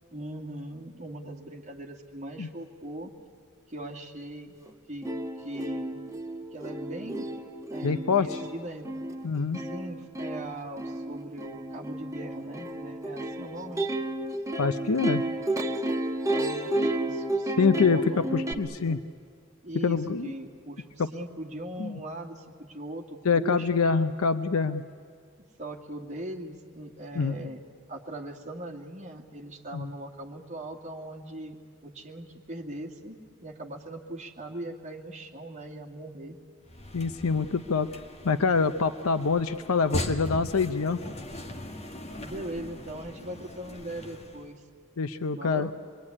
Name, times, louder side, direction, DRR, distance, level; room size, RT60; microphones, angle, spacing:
voice 1, 0.1-3.1 3.7-4.6 4.9-6.0 6.5-7.3 7.7-8.9 9.6-13.8 16.3-19.0 19.6-23.8 25.6-27.6 27.9-36.4 42.2-44.6 45.3-45.7, right 1 dB, 35° right, 0 dB, 2.3 m, -40 dB
Plucked string instrument, 4.7-4.8 5.0-18.5, right 1 dB, 15° right, 1.3 m, -32 dB
voice 2, 7.8-8.4 9.2-9.6 14.6-15.2 17.6-19.0 19.8-20.3 21.0-21.1 21.8-22.0 23.2-24.8 27.1-27.5 29.7-29.9 36.9-37.9 38.2-41.0 45.0-45.7, left 5 dB, 85° left, 10 dB, 0.7 m, -25 dB
sound 1, 36.6-44.5, left 1 dB, 30° left, 1.7 m, -39 dB
26.5 x 22.0 x 9.9 m, 2.2 s
head